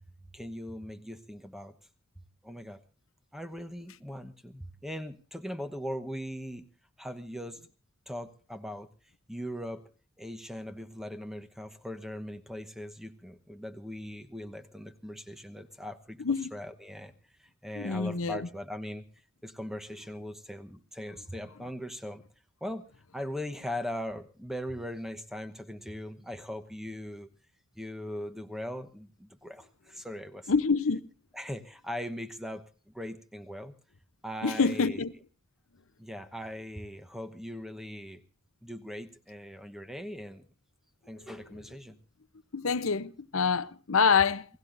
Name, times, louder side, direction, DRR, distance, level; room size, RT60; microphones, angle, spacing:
voice 1, 0.3-1.7 2.4-2.8 3.3-6.6 7.0-7.6 8.1-8.9 9.3-9.8 10.2-16.2 16.5-17.1 17.4-19.0 19.4-22.2 22.6-22.8 23.1-27.3 27.8-30.5 31.3-33.7 34.2-35.0 36.0-38.2 38.6-40.5 41.1-42.0, equal, ahead, 1.0 m, -40 dB
voice 2, 16.2-16.5 17.8-18.5 30.5-31.0 34.4-35.1 42.5-44.5, left 5 dB, 70° left, 0.8 m, -26 dB
28.5 x 17.5 x 2.6 m
head